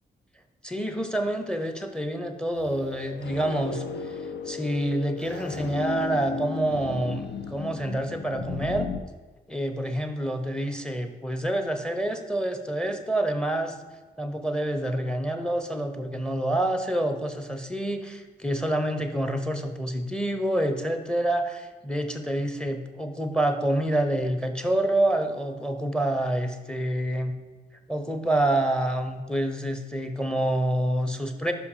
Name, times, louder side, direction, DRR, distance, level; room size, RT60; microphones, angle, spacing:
voice 1, 0.6-8.9 9.5-13.8 14.2-27.4 27.9-31.5, right 1 dB, 5° left, 7 dB, 0.9 m, -27 dB
sound 1, 2.5-9.0, left 5 dB, 65° left, 0.6 m, -35 dB
5.6 x 5.0 x 4.9 m, 1.3 s
supercardioid pair, 50°, 19 cm